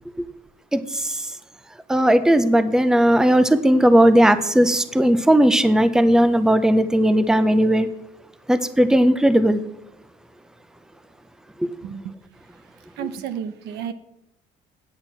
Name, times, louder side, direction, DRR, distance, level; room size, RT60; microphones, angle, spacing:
voice 1, 0.7-1.3 1.9-7.9 8.5-9.6 11.6-11.7, right 1 dB, 5° right, 0.6 m, -17 dB
voice 2, 11.8-12.1 13.0-13.9, right 8 dB, 80° right, 0.9 m, -31 dB
8.8 x 8.0 x 5.9 m
cardioid pair, 110°, 17 cm